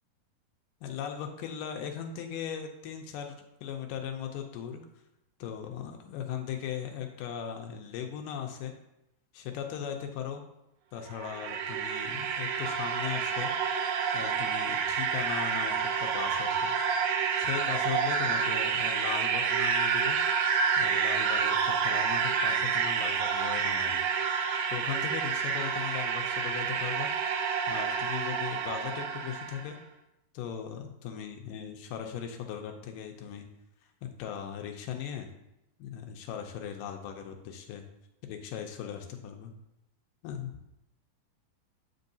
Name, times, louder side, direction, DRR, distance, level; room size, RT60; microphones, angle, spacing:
voice 1, 0.8-4.8 5.4-8.7 9.3-10.4 10.9-13.5 14.1-16.7 17.4-20.2 20.8-24.0 24.7-27.1 27.7-29.8 30.3-33.5 34.0-35.3 35.8-37.8 38.2-39.5 40.2-40.5, left 8 dB, 80° left, 3 dB, 2.1 m, -38 dB
sound 1, 11.0-29.7, right 6 dB, 85° right, 2.3 m, -29 dB
7.7 x 5.4 x 2.7 m, 0.88 s
omnidirectional pair, 4.0 m